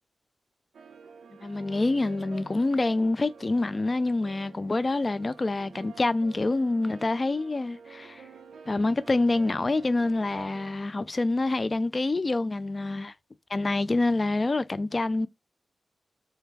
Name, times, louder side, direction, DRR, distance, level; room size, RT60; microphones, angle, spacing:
sound 1, 0.7-10.7, right 6 dB, 80° right, 0.4 m, -49 dB
voice 1, 1.4-8.2 8.7-13.1 13.5-15.3, left 2 dB, 45° left, 0.3 m, -26 dB
2.3 x 2.2 x 3.1 m
cardioid pair, 40°, 0 cm